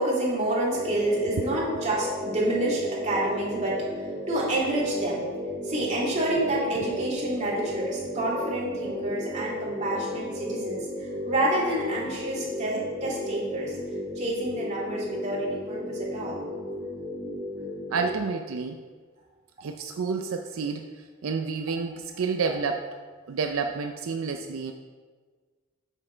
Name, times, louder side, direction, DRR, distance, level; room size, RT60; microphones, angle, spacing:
voice 1, 0.0-3.9 4.3-5.2 5.6-10.9 11.2-13.7 14.2-16.4, right 1 dB, 35° right, -5 dB, 2.5 m, -28 dB
sound 1, 0.7-18.2, left 1 dB, 10° right, 1.3 m, -34 dB
voice 2, 17.9-18.8 19.6-20.9 21.2-22.9 23.3-24.7, right 5 dB, 80° right, 5 dB, 0.5 m, -29 dB
8.7 x 6.4 x 4.4 m, 1.5 s
head